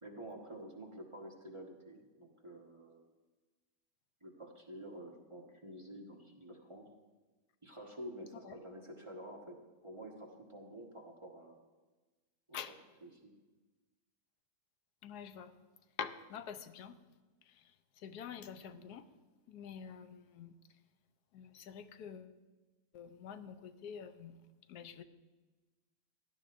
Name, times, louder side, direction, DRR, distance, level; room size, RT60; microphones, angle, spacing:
voice 1, 0.0-3.0 4.2-6.9 7.6-9.6 9.8-11.6 12.5-13.3, right 1 dB, 20° right, -1 dB, 1.2 m, -49 dB
voice 2, 15.0-15.5 16.0-17.0 18.0-19.0 19.5-20.5 21.3-22.3 22.9-24.3 24.7-25.0, left 7 dB, 85° left, 10 dB, 1.2 m, -46 dB
16.5 x 11.5 x 2.5 m, 1.2 s
omnidirectional pair, 1.7 m